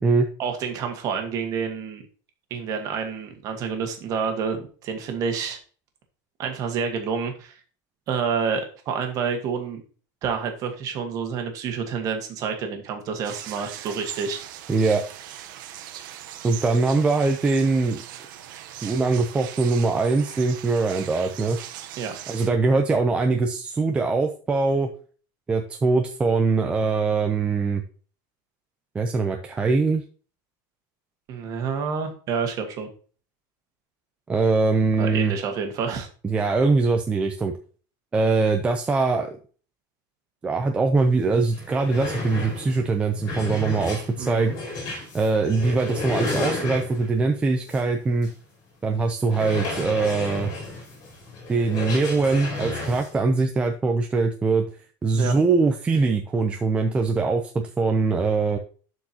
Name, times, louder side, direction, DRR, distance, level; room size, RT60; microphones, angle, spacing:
voice 1, 0.4-2.0 2.5-5.6 6.4-7.5 8.1-9.8 10.2-14.4 22.0-22.2 31.3-32.9 35.0-36.1 44.2-44.5 55.1-55.4, right 6 dB, 35° right, 5 dB, 1.5 m, -28 dB
sound 1, 13.2-22.5, right 11 dB, 85° right, 0.9 m, -40 dB
voice 2, 14.7-15.0 16.4-18.0 18.8-21.6 22.3-24.9 25.5-27.8 28.9-30.0 34.3-35.3 36.2-37.5 38.1-39.4 40.4-44.5 45.1-48.3 48.8-50.5 51.5-54.7 55.0-58.6, right 3 dB, 10° right, 3 dB, 0.5 m, -22 dB
sound 2, 41.1-41.2 41.5-47.2 47.7-47.8 48.2-48.3 49.3-53.1, left 2 dB, 40° left, 3.7 m, -32 dB
12.0 x 4.6 x 2.8 m, 0.40 s
cardioid pair, 175°, 10 cm